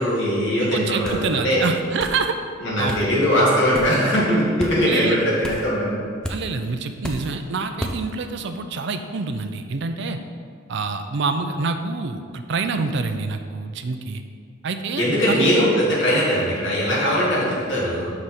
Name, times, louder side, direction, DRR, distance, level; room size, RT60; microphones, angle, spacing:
voice 1, 0.0-1.6 2.6-6.0 15.0-18.1, equal, 60° left, -7 dB, 1.7 m, -20 dB
voice 2, 0.6-2.4 2.8-3.1 4.9-5.2 6.3-10.2 10.7-14.2 14.6-15.5, right 4 dB, 55° right, 7 dB, 0.4 m, -26 dB
sound 1, 1.0-1.3 2.0-2.2 2.9-3.1 3.7-4.0 4.6-4.8 5.4-5.7 6.2-6.4 7.0-7.3 7.8-8.0, equal, 5° left, 0.4 m, -31 dB
6.2 x 5.0 x 4.2 m, 2.1 s
head